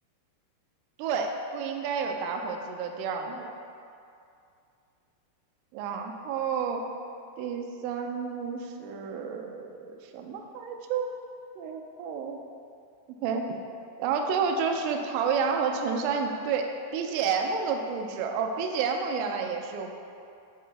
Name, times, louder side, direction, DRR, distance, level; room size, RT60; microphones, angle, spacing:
voice 1, 1.0-3.5 5.7-6.8 7.4-11.1 11.6-12.4 13.2-13.6 14.0-19.9, right 5 dB, 85° right, 3 dB, 3.0 m, -30 dB
8.9 x 4.3 x 3.2 m, 2.5 s
omnidirectional pair, 5.8 m